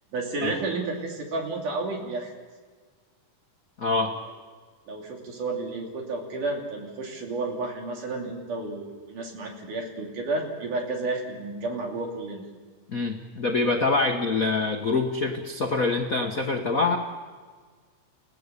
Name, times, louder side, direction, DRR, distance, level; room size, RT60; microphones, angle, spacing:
voice 1, 0.1-2.3 4.9-12.5, right 3 dB, 75° right, 1 dB, 4.5 m, -31 dB
voice 2, 3.8-4.1 12.9-17.0, left 3 dB, 60° left, 2 dB, 0.9 m, -25 dB
30.0 x 16.0 x 6.8 m, 1.5 s
omnidirectional pair, 3.6 m